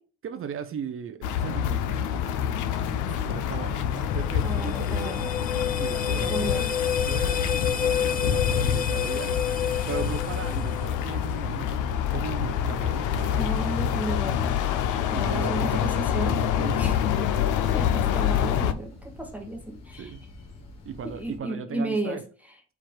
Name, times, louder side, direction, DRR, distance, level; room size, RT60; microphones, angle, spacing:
voice 1, 0.2-2.1 3.3-6.7 7.0-9.4 9.9-13.5 14.0-14.2 15.1-15.8 16.6-16.8 17.7-17.8 20.0-20.2 20.9-22.2, right 8 dB, 45° right, 0.5 m, -37 dB
sound 1, 1.2-18.7, left 9 dB, 85° left, 0.4 m, -27 dB
sound 2, 1.7-21.4, left 3 dB, 60° left, 1.2 m, -43 dB
voice 2, 2.8-3.4 4.4-5.3 6.1-6.7 13.3-14.5 15.1-17.0 17.7-20.1 21.0-22.2, right 1 dB, 5° right, 0.8 m, -34 dB
sound 3, 4.1-11.2, left 8 dB, 30° left, 0.5 m, -30 dB
4.6 x 2.4 x 4.4 m
cardioid pair, 90°, 30 cm